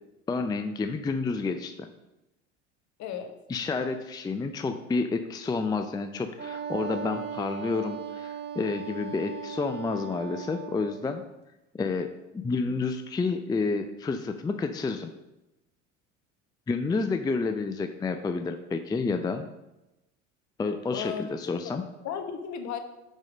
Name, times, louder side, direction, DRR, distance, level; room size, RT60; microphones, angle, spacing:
voice 1, 0.3-1.9 3.5-11.2 11.7-15.1 16.7-19.5 20.6-21.8, left 4 dB, 10° left, 7 dB, 0.4 m, -30 dB
voice 2, 3.0-3.3 20.9-21.3 21.6-22.8, left 7 dB, 50° left, 6 dB, 1.2 m, -35 dB
Wind instrument woodwind instrument, 6.4-11.0, right 6 dB, 25° right, 1.5 m, -37 dB
5.4 x 5.3 x 6.3 m, 0.97 s
hypercardioid pair, 75°, 37 cm